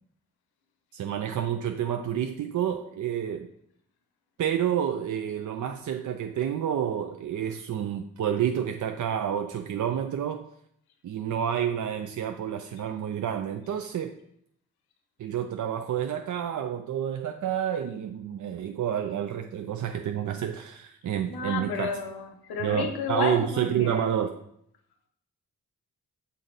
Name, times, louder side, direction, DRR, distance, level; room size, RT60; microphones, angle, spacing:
voice 1, 0.9-3.5 4.4-10.5 11.0-14.2 15.2-21.9 22.6-24.3, right 9 dB, 55° right, 6 dB, 0.5 m, -29 dB
voice 2, 21.3-24.2, left 4 dB, 85° left, 6 dB, 0.8 m, -32 dB
6.2 x 4.0 x 3.9 m, 0.73 s
supercardioid pair, 40°, 37 cm